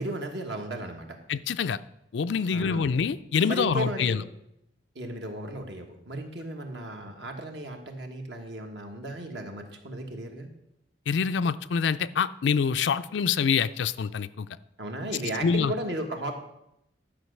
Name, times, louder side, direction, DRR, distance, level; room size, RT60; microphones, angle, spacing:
voice 1, 0.0-1.2 2.5-2.9 3.5-4.2 4.9-10.5 14.8-16.3, right 1 dB, 65° right, 3 dB, 1.5 m, -35 dB
voice 2, 1.3-1.8 2.1-4.2 11.1-14.5 15.4-15.7, left 6 dB, 75° left, 14 dB, 0.4 m, -26 dB
11.0 x 5.1 x 6.5 m, 0.82 s
head